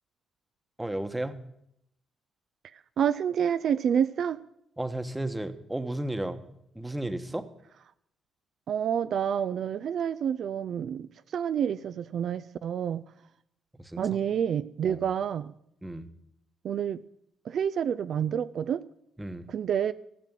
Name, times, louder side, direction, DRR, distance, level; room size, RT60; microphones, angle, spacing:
voice 1, 0.8-1.3 4.8-7.5 13.8-14.0 14.9-15.0 15.8-16.1 19.2-19.5, right 1 dB, 10° right, 10 dB, 1.1 m, -33 dB
voice 2, 2.7-4.4 8.7-13.0 14.0-15.5 16.6-17.0 17.4-18.8 19.5-19.9, right 8 dB, 65° right, 13 dB, 0.4 m, -28 dB
14.5 x 5.8 x 9.1 m, 0.77 s
cardioid pair, 90°, 0 cm